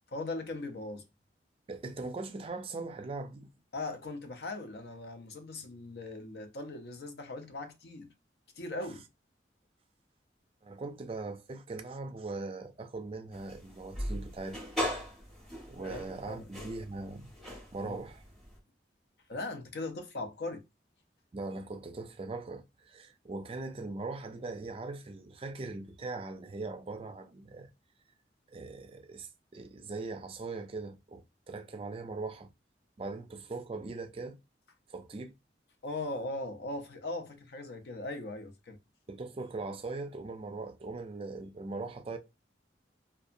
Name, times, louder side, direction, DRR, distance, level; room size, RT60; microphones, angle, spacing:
voice 1, 0.1-1.0 3.7-8.1 8.6-9.1 15.8-16.7 17.8-18.0 19.3-20.6 35.8-38.8, left 2 dB, 65° left, 0.5 m, -39 dB
voice 2, 1.7-3.5 10.6-14.6 15.7-17.3 17.7-18.2 21.3-27.7 28.5-32.5 33.0-34.4 34.9-35.3 39.1-42.2, right 3 dB, 30° right, 0.4 m, -40 dB
sound 1, 13.3-18.6, left 1 dB, ahead, 0.7 m, -39 dB
2.7 x 2.2 x 2.5 m
head